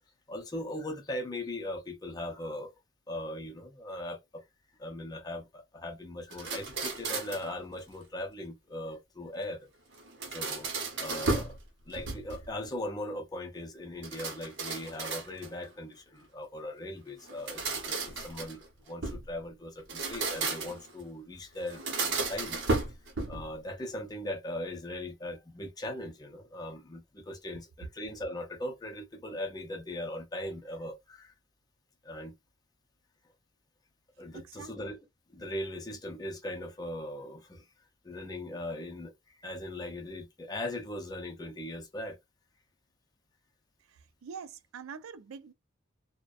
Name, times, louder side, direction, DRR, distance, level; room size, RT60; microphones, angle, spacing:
voice 1, 0.3-2.7 3.1-4.4 4.8-9.7 10.3-10.7 11.0-11.6 11.9-22.6 22.9-23.0 23.3-31.3 32.0-32.3 34.2-35.0 35.3-37.6 38.0-42.2, left 1 dB, 20° left, 0.5 m, -39 dB
sound 1, 6.3-7.5 9.9-11.6 11.9-12.5 14.0-15.6 17.2-19.3 19.8-20.9 21.7-23.5, right 3 dB, 65° right, 0.8 m, -34 dB
voice 2, 34.3-34.7 43.9-45.5, right 6 dB, 80° right, 0.4 m, -45 dB
2.4 x 2.1 x 2.4 m
head